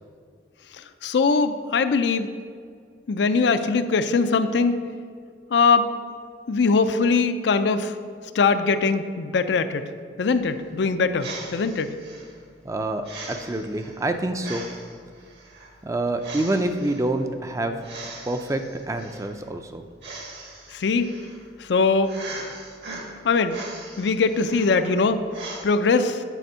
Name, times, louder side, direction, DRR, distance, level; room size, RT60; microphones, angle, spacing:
voice 1, 1.0-2.4 3.1-4.8 5.5-5.9 6.5-7.9 8.3-9.9 10.2-11.9 20.7-21.1 21.6-22.1 23.2-23.6 24.0-25.2 25.6-26.2, left 4 dB, 70° left, 10 dB, 0.4 m, -21 dB
sound 1, 10.3-25.6, right 3 dB, 65° right, 1.4 m, -41 dB
voice 2, 12.6-14.7 15.8-17.8 18.3-18.6 18.9-19.8, right 1 dB, 15° right, 7 dB, 0.4 m, -27 dB
9.2 x 4.4 x 5.5 m, 2.1 s
head